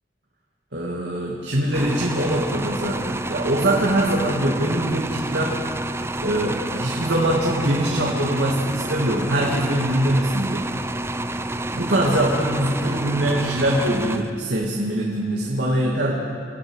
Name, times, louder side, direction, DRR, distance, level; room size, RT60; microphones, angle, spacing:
voice 1, 0.7-5.5 6.2-10.6 11.7-16.1, right 1 dB, 70° right, -3 dB, 2.3 m, -23 dB
sound 1, 1.7-14.7, right 1 dB, 15° right, 0.6 m, -29 dB
27.5 x 15.0 x 6.4 m, 2.4 s
head